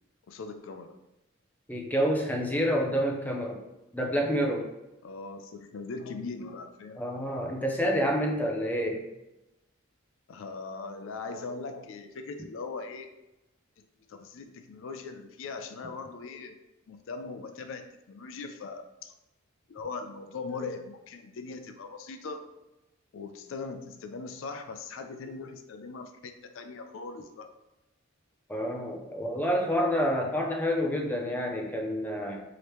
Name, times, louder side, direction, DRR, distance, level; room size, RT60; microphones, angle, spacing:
voice 1, 0.3-0.9 5.0-7.0 10.3-13.1 14.1-16.6 16.9-19.1 19.7-22.5 23.1-27.5 31.2-31.4 31.7-32.0, left 4 dB, 65° left, 7 dB, 0.4 m, -40 dB
voice 2, 1.7-3.6 3.9-4.7 7.0-9.0 28.5-32.4, equal, 10° left, 0 dB, 0.5 m, -28 dB
4.8 x 2.9 x 3.1 m, 0.96 s
head